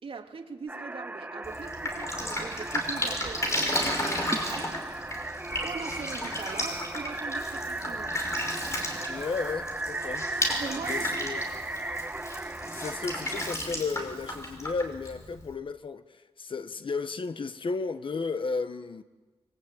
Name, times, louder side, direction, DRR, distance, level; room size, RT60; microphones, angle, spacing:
voice 1, 0.0-5.1 5.6-8.2 10.6-11.5, right 5 dB, 60° right, 2.6 m, -41 dB
sound 1, 0.7-13.6, right 2 dB, 15° right, 1.1 m, -36 dB
Drip, 1.4-15.5, left 1 dB, 30° left, 5.5 m, -34 dB
voice 2, 9.1-10.3 10.8-11.4 12.7-19.0, left 4 dB, 55° left, 1.3 m, -34 dB
25.0 x 24.5 x 9.0 m
wide cardioid pair, 130°, 10 cm